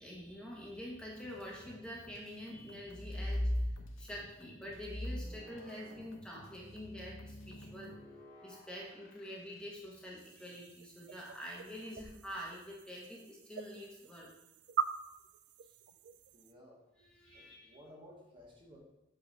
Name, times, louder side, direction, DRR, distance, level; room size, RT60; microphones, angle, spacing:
voice 1, 0.0-3.7 4.0-7.9 8.4-14.3 17.0-17.8, equal, 5° left, -4 dB, 1.3 m, -46 dB
sound 1, 1.2-8.0, left 1 dB, 80° left, 0.8 m, -60 dB
sound 2, 2.8-4.3 4.7-10.2 11.8-12.1, left 1 dB, 45° left, 0.9 m, -41 dB
sound 3, 10.2-16.5, right 7 dB, 55° right, 0.3 m, -43 dB
voice 2, 16.3-16.8 17.3-18.8, equal, 25° right, -3 dB, 1.1 m, -57 dB
8.3 x 4.0 x 4.0 m, 0.97 s
head